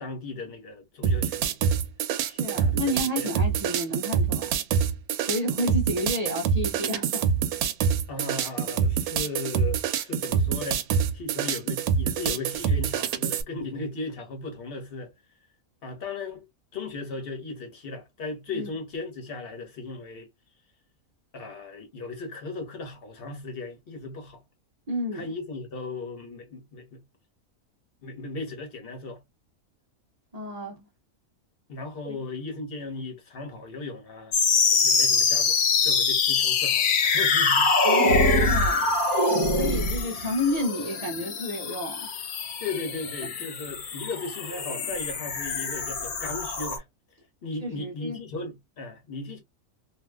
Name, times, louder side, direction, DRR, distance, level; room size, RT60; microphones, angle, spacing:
voice 1, 0.0-1.5 2.5-3.4 8.1-10.9 11.1-15.1 15.8-16.5 16.7-20.3 21.3-24.4 25.1-27.0 28.0-29.2 31.7-34.3 34.8-37.7 42.6-46.8 47.4-49.4, left 3 dB, 45° left, 1.2 m, -36 dB
sound 1, 1.0-13.4, right 7 dB, 85° right, 1.0 m, -26 dB
voice 2, 2.3-4.5 5.3-7.3 18.5-18.7 24.9-25.2 30.3-30.8 32.0-32.2 37.8-38.8 39.6-42.1 43.2-43.3 47.6-48.2, left 1 dB, 45° right, 0.5 m, -30 dB
sound 2, 34.3-46.8, left 4 dB, 85° left, 1.2 m, -24 dB
2.8 x 2.6 x 2.3 m
omnidirectional pair, 1.5 m